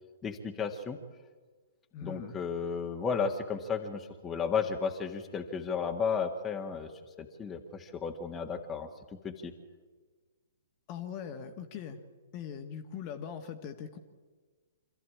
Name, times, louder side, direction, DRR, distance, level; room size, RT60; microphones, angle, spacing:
voice 1, 0.2-1.0 2.0-6.9 7.2-8.9 9.2-9.5, left 6 dB, 15° left, 3 dB, 1.8 m, -33 dB
voice 2, 1.9-2.4 10.9-12.0 12.3-14.0, left 8 dB, 35° left, 6 dB, 1.7 m, -41 dB
26.0 x 14.0 x 8.6 m, 1.4 s
figure-of-eight pair, 120°, 0 cm